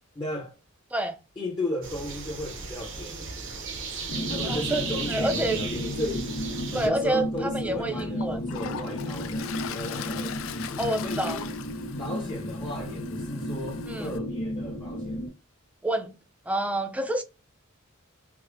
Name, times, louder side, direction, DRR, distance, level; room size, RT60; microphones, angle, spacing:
voice 1, 0.1-0.5 1.4-3.5 4.3-6.3 6.7-11.5 12.0-15.2, left 1 dB, 20° left, 0.7 m, -35 dB
sound 1, 1.8-6.9, right 4 dB, 65° right, 0.8 m, -35 dB
sound 2, 4.1-15.3, equal, 85° left, 0.8 m, -33 dB
voice 2, 4.4-5.6 6.7-8.4 10.8-11.4 13.9-14.1 15.8-16.1 16.5-17.2, right 1 dB, 5° right, 0.4 m, -28 dB
Toilet flush, 7.4-7.5 8.0-14.2, left 9 dB, 70° left, 0.3 m, -40 dB
4.6 x 2.1 x 2.5 m
head